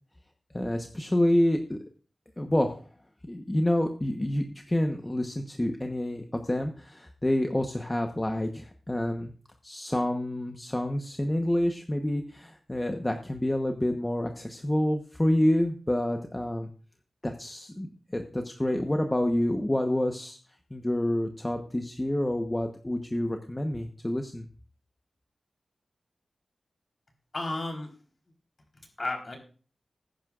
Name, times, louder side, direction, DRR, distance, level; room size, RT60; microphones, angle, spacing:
voice 1, 0.5-1.8 2.4-2.8 3.3-9.3 9.6-16.7 17.2-17.9 18.1-20.4 20.7-24.5, left 1 dB, 15° left, 4 dB, 1.1 m, -28 dB
voice 2, 27.3-27.9 28.8-29.4, left 2 dB, 40° left, 3 dB, 3.8 m, -33 dB
20.0 x 10.5 x 2.5 m, 0.39 s
wide cardioid pair, 120°, 0 cm